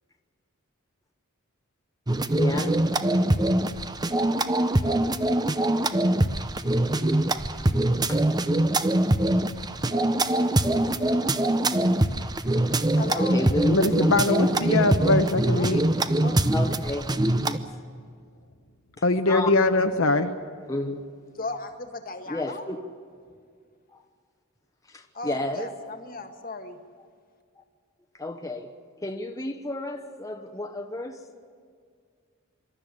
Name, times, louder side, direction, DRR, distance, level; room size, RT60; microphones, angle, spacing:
sound 1, 2.1-17.6, right 1 dB, 20° right, 0.7 m, -23 dB
voice 1, 2.4-2.8 8.1-8.2 10.6-10.8 11.6-11.9 13.1-14.2 16.5-17.1 17.4-17.8 19.3-19.5 20.7-21.0 22.3-22.8 25.2-25.7 28.2-28.7 29.0-31.4, left 1 dB, 15° left, 1.0 m, -31 dB
voice 2, 13.0-13.4 15.5-15.7 16.2-16.4 21.4-22.6 25.1-26.8, left 3 dB, 45° left, 1.8 m, -36 dB
voice 3, 13.7-15.8 19.0-20.3, left 2 dB, 70° left, 1.0 m, -22 dB
25.5 x 12.5 x 9.9 m
head